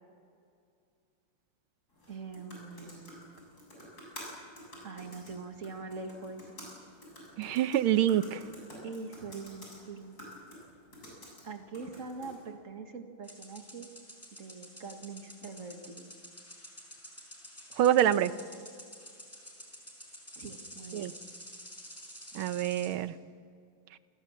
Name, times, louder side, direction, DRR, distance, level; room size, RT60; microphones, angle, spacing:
sound 1, 1.9-12.5, equal, 45° left, 8.3 m, -50 dB
voice 1, 2.1-3.3 4.8-6.6 8.8-10.1 11.4-13.9 14.4-16.1 20.4-21.1, right 4 dB, 40° right, 5 dB, 2.1 m, -43 dB
voice 2, 7.4-8.4 17.8-18.3 20.9-21.1 22.3-23.1, right 11 dB, 80° right, 13 dB, 1.7 m, -26 dB
sound 2, 13.2-22.9, equal, 5° left, 4.6 m, -50 dB
29.0 x 19.5 x 7.4 m, 2.3 s
omnidirectional pair, 2.3 m